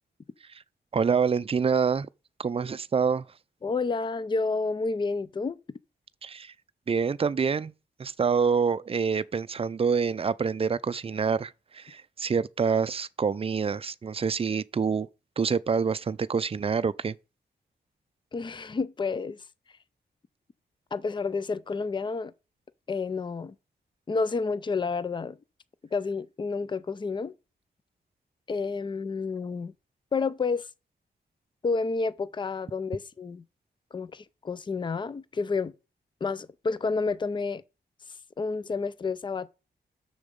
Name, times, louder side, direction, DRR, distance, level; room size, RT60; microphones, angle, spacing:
voice 1, 0.9-2.1 2.4-3.3 6.2-6.5 6.9-7.7 8.0-15.1 15.4-17.2, right 6 dB, 35° right, 0.4 m, -26 dB
voice 2, 3.6-5.6 18.3-19.4 20.9-22.3 22.9-23.5 24.1-25.4 25.9-27.3 28.5-29.7 30.1-30.7 31.6-33.4 33.9-35.7 36.2-37.6 38.4-39.5, left 4 dB, 25° left, 0.5 m, -30 dB
6.8 x 6.4 x 5.2 m
wide cardioid pair, 120°, 17 cm